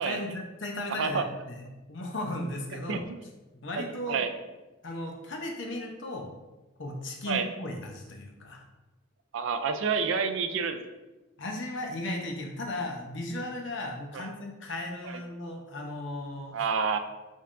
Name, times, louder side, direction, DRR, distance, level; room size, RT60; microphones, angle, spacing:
voice 1, 0.0-3.0 3.5-4.3 4.8-6.3 6.8-8.6 11.4-16.7, left 1 dB, 60° left, 1 dB, 0.7 m, -36 dB
voice 2, 3.8-4.3 7.3-7.5 9.3-10.8 14.1-14.2 16.5-17.0, right 5 dB, 65° right, 8 dB, 0.4 m, -28 dB
5.2 x 3.4 x 2.5 m, 1.1 s
head